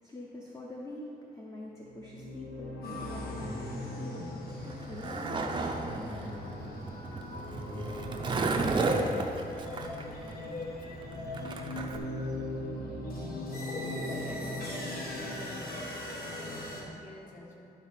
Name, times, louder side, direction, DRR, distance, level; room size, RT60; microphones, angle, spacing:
voice 1, 0.0-7.1, left 1 dB, 20° left, -3 dB, 0.7 m, -45 dB
sound 1, 1.7-10.2 10.9-16.6, left 1 dB, 85° left, 1.3 m, -41 dB
sound 2, 2.8-16.8, left 1 dB, 65° left, 1.3 m, -41 dB
Skateboard, 4.5-12.0, right 3 dB, 30° right, 0.5 m, -33 dB
voice 2, 14.0-17.7, left 1 dB, 50° left, -4 dB, 1.6 m, -48 dB
11.0 x 3.9 x 5.8 m, 2.8 s
wide cardioid pair, 175°, 17 cm